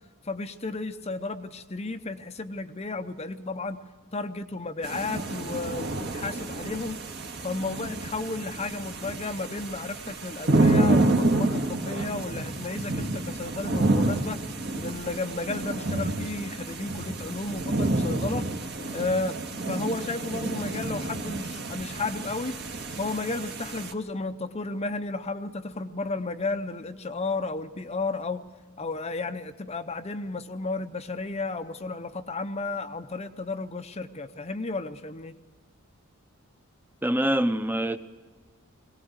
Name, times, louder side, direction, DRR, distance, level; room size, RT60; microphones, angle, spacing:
voice 1, 0.2-3.8 4.1-7.0 7.4-14.5 14.7-18.5 18.9-19.4 19.7-22.6 23.0-28.4 28.8-35.4, left 3 dB, 30° left, 9 dB, 0.7 m, -33 dB
sound 1, 4.8-23.9, right 2 dB, 50° right, 1.8 m, -29 dB
voice 2, 37.0-38.0, right 1 dB, 10° right, 10 dB, 0.8 m, -24 dB
21.5 x 18.0 x 8.0 m, 1.5 s
head